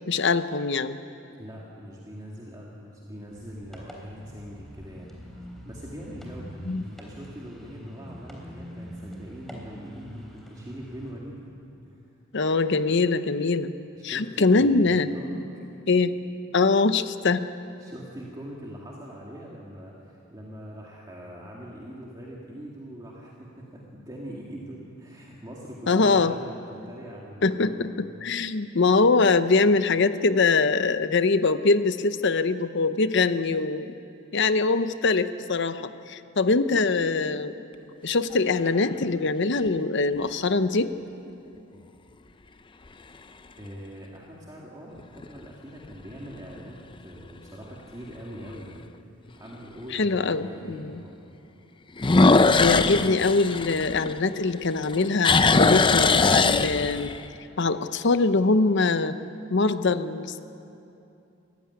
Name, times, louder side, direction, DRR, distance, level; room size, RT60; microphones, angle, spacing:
voice 1, 0.1-1.0 6.7-6.8 12.3-13.7 14.0-15.1 15.9-16.1 16.5-17.5 25.9-26.3 27.4-33.9 34.3-35.8 36.1-37.5 38.0-40.9 49.9-51.0 52.4-57.1 57.6-59.1 59.5-60.4, left 3 dB, 60° left, 12 dB, 0.8 m, -23 dB
voice 2, 1.4-5.3 5.6-11.5 11.8-12.0 13.9-15.4 17.8-27.9 43.6-48.9 49.4-51.2, equal, 20° right, -4 dB, 2.2 m, -42 dB
sound 1, 3.3-11.1, equal, ahead, 3.4 m, -43 dB
sound 2, 38.3-39.0 39.7-39.8 45.0-45.5 45.9-46.0 46.6-46.7 46.9-47.0 48.5-48.6 52.0-54.5 54.8-57.2, left 3 dB, 25° left, 0.6 m, -20 dB
22.5 x 15.5 x 9.7 m, 2.8 s
head